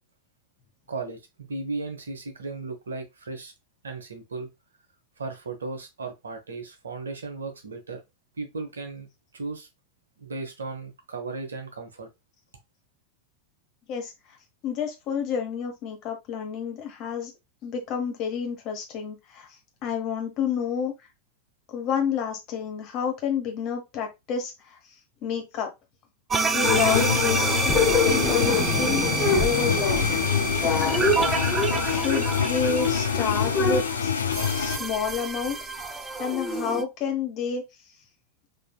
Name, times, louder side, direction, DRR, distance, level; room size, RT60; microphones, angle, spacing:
voice 1, 0.9-3.5 3.8-4.5 5.2-8.0 8.4-9.1 9.3-9.7 10.2-12.1, right 3 dB, 70° right, 0.8 m, -35 dB
voice 2, 14.6-17.3 17.6-19.5 19.8-20.9 21.7-24.8 25.2-25.7 26.5-29.1 29.4-30.3 30.6-31.4 31.9-34.2 34.5-35.6 36.2-37.6, left 7 dB, 40° left, 1.0 m, -29 dB
sound 1, 26.3-36.8, right 3 dB, 20° right, 0.3 m, -28 dB
sound 2, 26.6-34.8, left 7 dB, 70° left, 0.3 m, -26 dB
sound 3, 26.6-33.8, left 3 dB, 20° left, 0.7 m, -27 dB
3.7 x 2.6 x 2.3 m
figure-of-eight pair, 90°, 0 cm